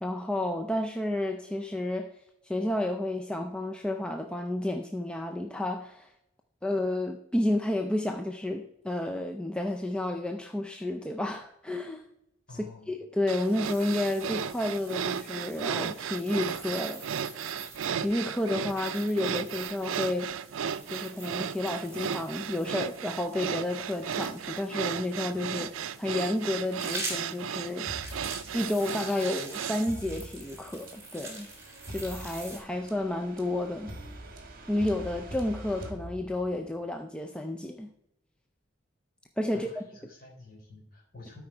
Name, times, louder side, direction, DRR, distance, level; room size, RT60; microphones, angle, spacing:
voice 1, 0.0-2.1 2.4-6.1 6.6-12.0 12.6-17.0 17.4-17.6 17.9-20.3 20.9-25.7 26.0-31.5 31.9-33.9 34.7-37.9 39.4-39.8, left 1 dB, 5° left, 3 dB, 0.4 m, -31 dB
voice 2, 12.5-12.9 39.5-41.4, left 2 dB, 45° left, -1 dB, 3.9 m, -49 dB
sound 1, 13.3-29.9, right 8 dB, 80° right, 0.4 m, -35 dB
sound 2, 13.6-24.8 26.4-32.6, right 2 dB, 15° right, 2.1 m, -45 dB
sound 3, 27.9-36.7, right 1 dB, 45° right, 1.4 m, -45 dB
12.5 x 4.9 x 4.4 m, 0.82 s
head